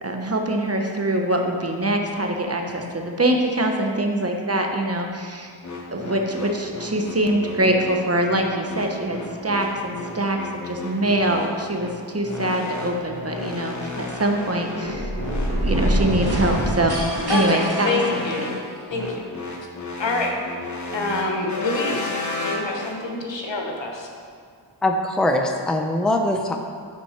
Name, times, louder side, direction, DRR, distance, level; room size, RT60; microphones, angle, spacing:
voice 1, 0.0-5.5 5.9-15.1 15.5-17.0 17.3-18.5, right 1 dB, 30° right, 2 dB, 1.0 m, -24 dB
sound 1, 5.6-22.9, left 2 dB, 40° left, 1.3 m, -33 dB
sound 2, 14.8-18.8, right 1 dB, 55° right, 1.7 m, -25 dB
voice 2, 17.3-18.6 18.9-19.3 20.0-20.3 20.9-22.1 22.4-24.1, left 3 dB, 75° left, 1 dB, 1.3 m, -26 dB
voice 3, 24.8-26.6, left 1 dB, ahead, 3 dB, 0.6 m, -22 dB
11.0 x 4.2 x 4.4 m, 2.1 s
cardioid pair, 45°, 45 cm